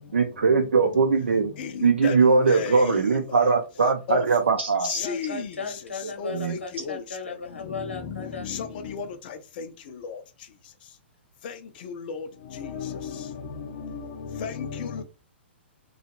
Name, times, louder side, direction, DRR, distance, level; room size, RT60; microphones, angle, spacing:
voice 1, 0.1-1.5 1.8-5.0 6.3-6.6, right 4 dB, 80° right, 0.5 m, -21 dB
voice 2, 2.5-2.8 4.1-4.2 4.9-5.4 6.2-6.6 6.8-6.9 8.5-8.7 8.9-9.0 9.6-9.7 12.6-13.1 13.6-13.7 14.3-15.0, left 7 dB, 50° left, 0.5 m, -31 dB
voice 3, 4.9-8.5, left 4 dB, 80° left, 0.9 m, -36 dB
2.8 x 2.3 x 2.9 m
figure-of-eight pair, 120°, 6 cm